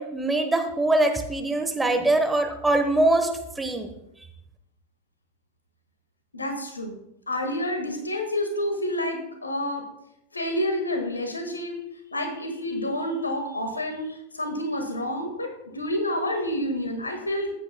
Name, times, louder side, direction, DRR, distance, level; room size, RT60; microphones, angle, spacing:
voice 1, 0.0-3.3 3.6-3.9, right 2 dB, 10° right, 5 dB, 1.1 m, -23 dB
voice 2, 6.3-6.9 7.3-9.8 10.3-11.8 12.1-17.5, left 1 dB, 80° left, 5 dB, 1.7 m, -29 dB
14.5 x 8.3 x 2.2 m, 0.81 s
figure-of-eight pair, 90°, 0 cm